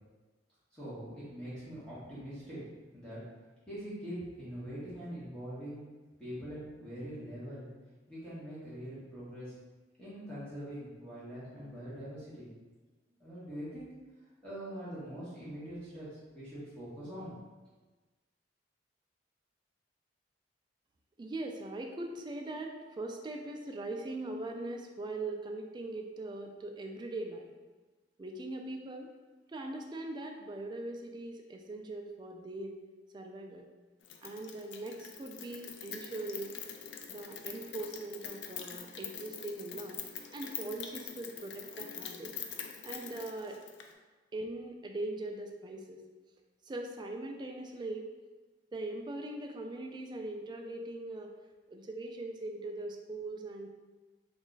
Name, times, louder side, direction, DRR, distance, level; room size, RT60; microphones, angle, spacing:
voice 1, 0.7-2.6 2.9-3.2 3.7-5.8 6.2-7.7 8.1-9.5 10.0-12.5 13.2-13.8 14.4-16.1 16.3-17.3, equal, 5° left, -12 dB, 1.1 m, -43 dB
voice 2, 21.2-27.5 28.2-29.1 29.5-32.8 33.1-33.7 34.2-36.6 37.1-40.0 40.3-42.3 42.8-43.6 44.3-46.0 46.6-48.1 48.7-51.3 51.7-53.7, right 2 dB, 25° right, 2 dB, 0.3 m, -41 dB
Rain, 34.0-43.9, left 7 dB, 75° left, 0.4 m, -44 dB
3.1 x 2.4 x 3.8 m, 1.3 s
head